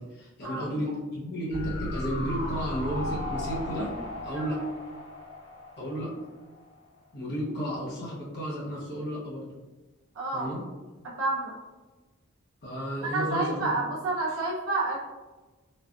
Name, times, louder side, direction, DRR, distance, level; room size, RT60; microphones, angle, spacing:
voice 1, 0.0-3.9 4.2-4.6 5.8-6.1 7.1-9.5 10.3-10.6 12.6-13.7, equal, 50° left, -6 dB, 0.9 m, -32 dB
sound 1, 1.5-6.7 7.0-7.1, left 1 dB, 70° left, 1.3 m, -36 dB
voice 2, 10.1-10.5 11.2-11.6 13.0-15.0, right 2 dB, 75° right, -4 dB, 0.8 m, -29 dB
4.0 x 2.4 x 2.4 m, 1.2 s
head